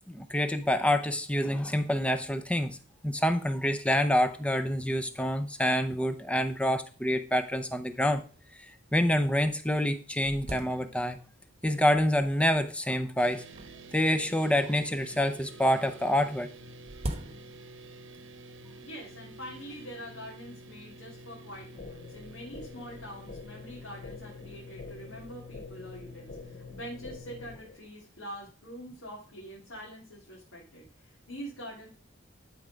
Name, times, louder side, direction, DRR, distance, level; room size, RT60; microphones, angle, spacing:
voice 1, 0.1-2.8 3.0-8.2 8.9-11.2 11.6-13.4 13.9-16.5, equal, 5° left, 9 dB, 0.6 m, -27 dB
sound 1, 7.7-7.8 8.4-8.5 9.1-9.2 9.6-11.4 12.1-12.5 13.5-14.8 16.1-17.9, right 1 dB, 30° right, 1.0 m, -42 dB
sound 2, 13.2-27.6, equal, 70° right, 1.1 m, -49 dB
voice 2, 18.7-31.9, equal, 85° left, -4 dB, 2.6 m, -45 dB
sound 3, 21.8-27.8, left 3 dB, 45° left, 1.0 m, -47 dB
12.0 x 4.4 x 5.1 m, 0.38 s
head